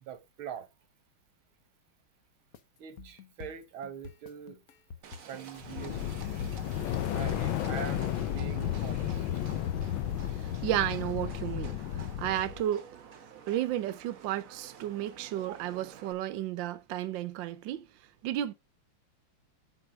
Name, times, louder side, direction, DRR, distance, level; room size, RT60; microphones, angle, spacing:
voice 1, 0.0-0.7 2.8-4.6 5.3-6.2 7.1-9.3, right 8 dB, 90° right, 2.0 m, -43 dB
sound 1, 2.5-6.7, left 5 dB, 55° left, 1.2 m, -49 dB
Livestock farm animals working animals, 5.0-16.1, right 7 dB, 55° right, 1.1 m, -50 dB
sound 2, 5.6-12.6, left 11 dB, 75° left, 1.5 m, -33 dB
voice 2, 10.6-12.8 13.5-17.8 18.2-18.5, right 12 dB, 70° right, 1.4 m, -32 dB
7.9 x 4.8 x 5.0 m
omnidirectional pair, 2.2 m